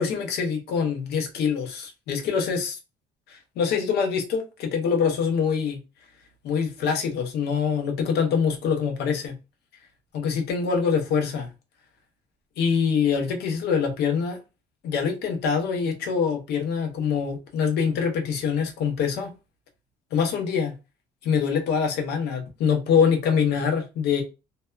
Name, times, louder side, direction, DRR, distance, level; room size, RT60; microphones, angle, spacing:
voice 1, 0.0-2.8 3.3-5.8 6.4-9.3 10.1-11.5 12.6-14.4 14.8-19.3 20.1-20.7 21.2-24.2, left 6 dB, 75° left, 0.7 m, -24 dB
2.7 x 2.1 x 2.2 m
cardioid pair, 110°, 17 cm